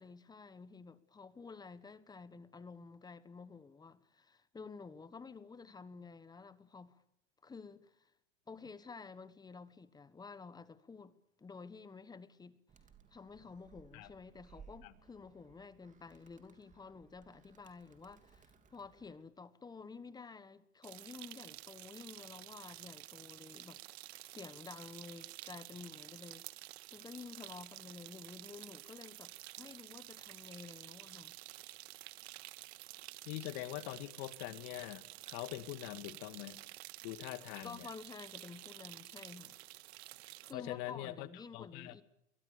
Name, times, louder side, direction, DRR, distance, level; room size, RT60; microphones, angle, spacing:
voice 1, 0.0-7.0 7.4-8.1 8.5-12.6 13.1-26.5 26.9-31.4 37.6-39.6 40.4-42.0, left 4 dB, 10° left, 1.4 m, -51 dB
Animal, 12.7-19.2, right 6 dB, 20° right, 2.9 m, -62 dB
sound 1, 20.8-40.5, right 18 dB, 60° right, 0.9 m, -51 dB
voice 2, 33.3-36.6 37.0-37.9 40.5-41.3 41.5-42.0, left 17 dB, 50° left, 2.0 m, -43 dB
28.5 x 23.0 x 6.9 m
hypercardioid pair, 120°, 35 cm